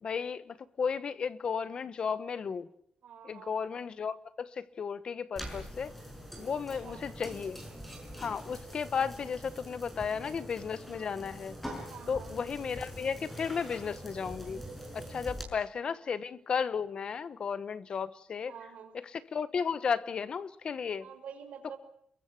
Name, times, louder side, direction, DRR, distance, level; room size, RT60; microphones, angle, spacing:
voice 1, 0.0-2.7 3.2-5.9 6.4-7.6 8.2-11.6 12.1-14.6 14.9-18.5 18.9-21.1, left 6 dB, 40° left, 1.2 m, -34 dB
voice 2, 3.0-3.6 6.8-7.1 11.8-12.4 15.8-16.0 18.4-19.0 21.0-21.8, right 7 dB, 65° right, 5.7 m, -48 dB
sound 1, 5.4-15.4, equal, 5° left, 5.8 m, -44 dB
29.5 x 22.5 x 6.0 m
wide cardioid pair, 165°, 2 cm